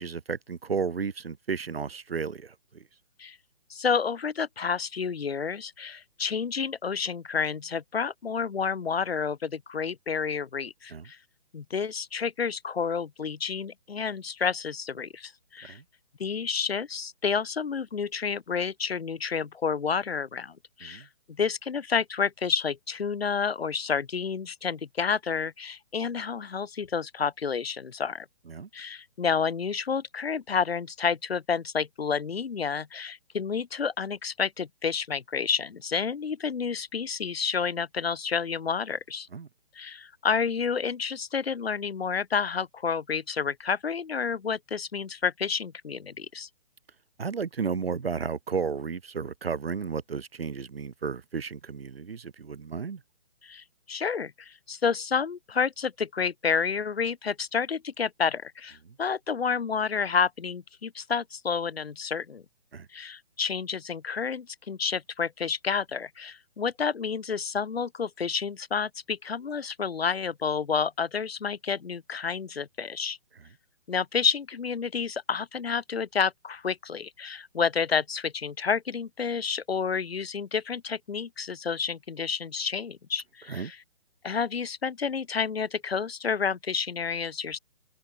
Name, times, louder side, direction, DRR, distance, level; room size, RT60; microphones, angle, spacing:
voice 1, 0.0-2.8 10.9-11.1 15.7-15.8 20.8-21.1 28.5-28.7 39.3-39.5 47.2-53.0 58.9-59.0 62.7-62.9 83.5-83.7, right 5 dB, 75° right, 5.4 m, -33 dB
voice 2, 3.7-11.2 11.5-15.8 16.2-28.3 28.7-39.3 39.8-46.5 53.4-62.4 62.9-73.2 73.9-83.8 84.2-87.6, left 6 dB, 80° left, 1.7 m, -30 dB
open air
hypercardioid pair, 155°, 30 cm